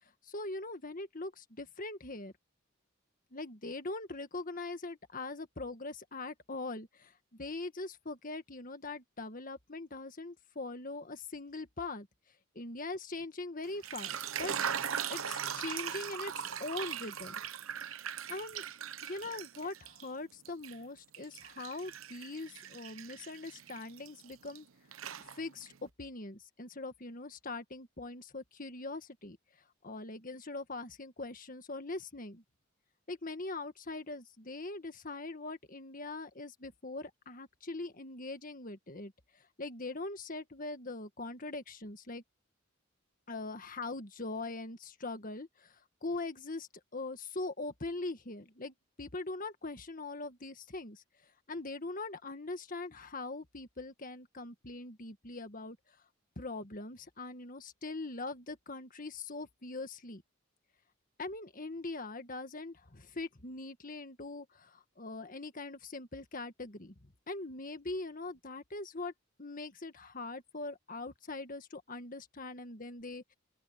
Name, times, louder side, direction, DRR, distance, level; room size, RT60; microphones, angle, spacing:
voice 1, 0.2-2.3 3.3-12.1 12.6-14.5 15.1-17.3 18.3-18.7 19.0-24.7 25.4-29.4 29.8-32.4 33.1-39.1 39.6-42.2 43.3-45.7 46.0-51.0 51.5-55.8 56.4-60.2 61.2-69.1 69.4-73.3, left 2 dB, 40° left, 1.7 m, -42 dB
sound 1, 13.7-20.1 20.4-24.6 24.9-25.7, right 8 dB, 85° right, 0.9 m, -40 dB
open air
head